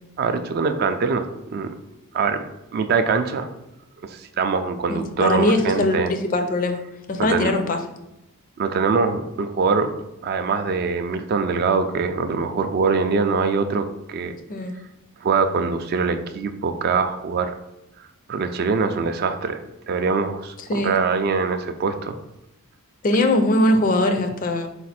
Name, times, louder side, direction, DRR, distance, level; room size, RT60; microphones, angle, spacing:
voice 1, 0.2-1.7 2.1-2.4 2.7-3.5 4.0-6.1 7.2-7.5 8.6-9.9 10.2-14.3 15.2-17.5 18.3-22.2, right 5 dB, 45° right, 8 dB, 0.3 m, -23 dB
voice 2, 4.9-6.8 7.1-7.8 14.5-14.7 20.7-20.9 23.0-24.7, left 1 dB, 40° left, 7 dB, 0.4 m, -21 dB
4.1 x 2.4 x 4.2 m, 0.91 s
head